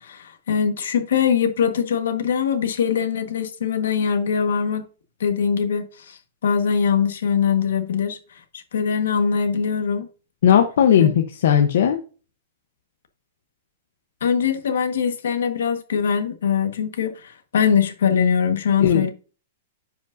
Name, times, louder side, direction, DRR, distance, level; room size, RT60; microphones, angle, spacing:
voice 1, 0.0-4.9 5.2-10.1 10.9-11.1 14.2-19.1, left 7 dB, 85° left, 1.4 m, -22 dB
voice 2, 10.4-12.0 18.8-19.1, left 9 dB, 70° left, 0.9 m, -17 dB
10.5 x 5.1 x 2.6 m
hypercardioid pair, 165°, 0 cm